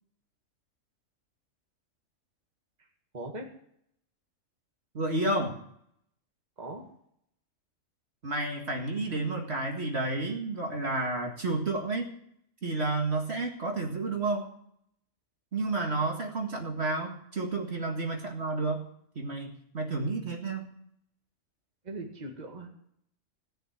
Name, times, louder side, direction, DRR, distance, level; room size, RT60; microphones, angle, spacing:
voice 1, 3.1-3.5 6.6-6.9 18.2-18.3 21.8-22.7, right 2 dB, 30° right, 1 dB, 2.0 m, -40 dB
voice 2, 4.9-5.6 8.2-12.1 12.6-14.5 15.5-18.8 19.2-20.7, right 2 dB, 55° right, 1 dB, 2.2 m, -31 dB
17.0 x 6.7 x 9.3 m, 0.70 s
omnidirectional pair, 1.4 m